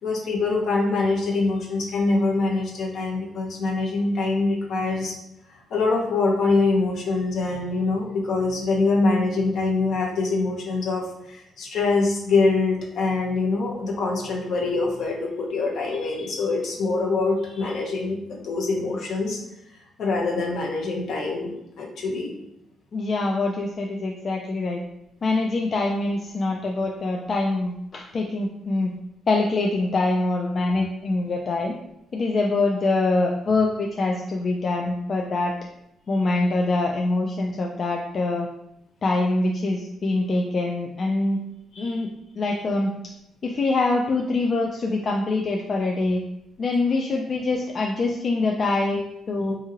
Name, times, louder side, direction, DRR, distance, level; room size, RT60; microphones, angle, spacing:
voice 1, 0.0-5.1 5.7-19.4 20.0-22.3 41.7-42.0, left 3 dB, 70° left, -2 dB, 0.7 m, -24 dB
voice 2, 22.9-24.8 25.2-28.9 29.3-31.7 32.1-35.5 36.1-38.5 39.0-41.4 41.8-42.1 42.4-42.9 43.4-46.2 46.6-49.6, left 2 dB, 45° left, 0 dB, 0.3 m, -24 dB
2.8 x 2.7 x 2.4 m, 0.82 s
cardioid pair, 90°, 0 cm